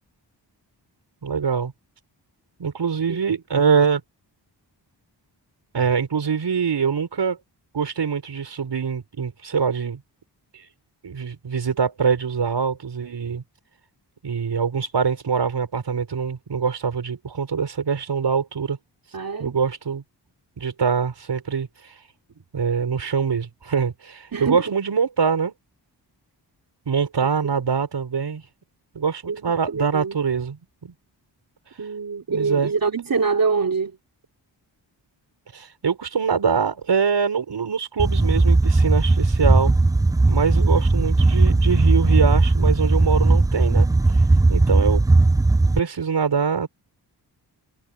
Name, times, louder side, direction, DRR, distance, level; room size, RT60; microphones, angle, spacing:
voice 1, 1.2-1.7 2.6-4.0 5.7-7.4 7.7-10.0 10.5-10.6 11.0-13.4 14.2-18.8 19.4-20.0 20.6-21.9 22.5-25.5 26.9-28.4 28.9-30.9 32.3-32.7 35.5-39.7 40.3-43.9 44.1-44.2 44.5-45.0 45.8-46.7, right 6 dB, 70° right, 5.5 m, -24 dB
voice 2, 19.1-19.6 24.3-24.6 29.3-29.4 29.7-30.2 31.8-34.0 40.6-40.7, right 5 dB, 50° right, 2.8 m, -25 dB
sound 1, 38.0-45.8, right 2 dB, 10° right, 0.3 m, -17 dB
wide cardioid pair, 85°, 43 cm